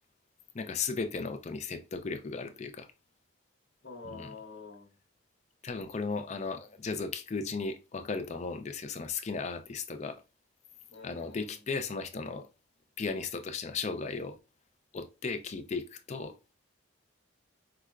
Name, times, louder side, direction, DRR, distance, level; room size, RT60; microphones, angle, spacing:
voice 1, 0.5-2.9 4.0-4.3 5.6-10.2 11.0-12.5 13.0-14.4 14.9-16.3, left 4 dB, 35° left, 0.4 m, -36 dB
voice 2, 3.8-4.9 8.8-8.9 10.9-11.7, left 4 dB, 75° left, 1.0 m, -47 dB
4.8 x 2.2 x 2.3 m
head